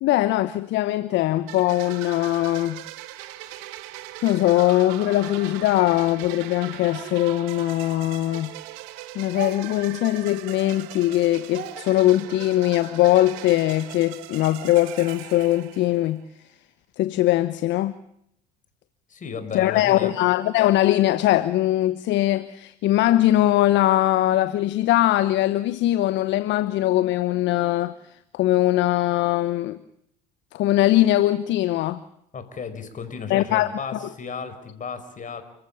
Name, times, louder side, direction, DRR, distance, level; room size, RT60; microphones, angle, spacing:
voice 1, 0.0-2.9 4.2-8.5 9.1-16.2 17.0-17.9 19.5-27.9 28.3-29.8 30.5-32.0 33.3-33.7, left 15 dB, 60° left, 1.0 m, -21 dB
sound 1, 1.5-16.2, right 16 dB, 70° right, 1.5 m, -40 dB
Speech, 2.1-5.2 5.8-8.6 8.9-13.3, right 8 dB, 50° right, 4.0 m, -44 dB
voice 2, 19.1-20.1 32.3-35.4, left 5 dB, 40° left, 5.1 m, -34 dB
30.0 x 15.0 x 8.5 m
hypercardioid pair, 70°, 21 cm